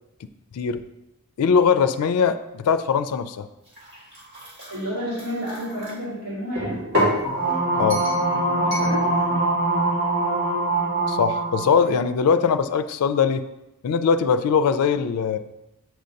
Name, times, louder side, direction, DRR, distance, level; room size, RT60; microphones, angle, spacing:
voice 1, 1.4-3.5 7.8-8.0 11.1-13.4 13.8-15.4, left 6 dB, 85° left, 9 dB, 0.4 m, -21 dB
sound 1, 3.7-5.9 6.6-7.2 7.9-8.2 8.7-8.9, equal, 55° right, 1.9 m, -28 dB
voice 2, 4.7-6.8 8.6-9.1, equal, 85° right, -8 dB, 2.5 m, -30 dB
sound 2, 7.2-11.8, right 2 dB, 70° right, 1.9 m, -23 dB
7.7 x 5.1 x 2.7 m, 0.92 s
head